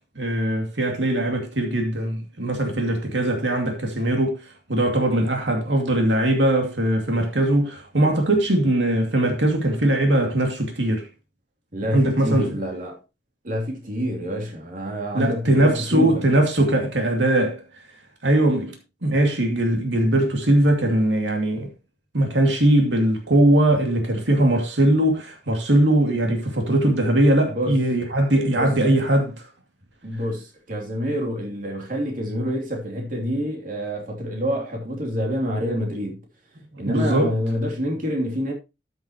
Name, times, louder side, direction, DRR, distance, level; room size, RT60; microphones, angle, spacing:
voice 1, 0.2-11.1 11.9-12.6 15.1-17.6 18.2-18.8 19.0-21.7 22.1-29.4 36.9-37.3, right 1 dB, 90° right, 2.5 m, -20 dB
voice 2, 11.7-13.0 13.4-16.2 27.5-27.8 28.5-28.8 30.0-36.2 36.8-38.5, equal, 50° right, 3.1 m, -27 dB
13.0 x 8.0 x 3.0 m
head